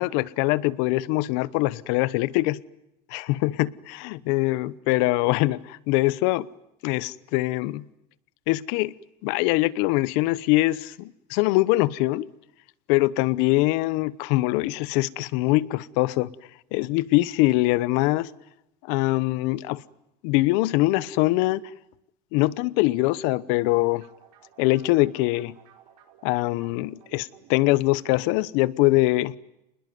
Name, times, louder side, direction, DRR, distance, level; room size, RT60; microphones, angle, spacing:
voice 1, 0.0-2.6 3.1-6.5 6.8-7.8 8.5-8.9 9.2-12.3 12.9-16.3 16.7-18.3 18.9-19.8 20.2-21.6 22.3-24.1 24.6-25.6 26.2-29.3, left 19 dB, 65° left, 19 dB, 1.0 m, -23 dB
sound 1, 23.0-28.1, right 9 dB, 70° right, 5.5 m, -55 dB
27.0 x 21.0 x 9.4 m, 0.86 s
supercardioid pair, 135°, 20 cm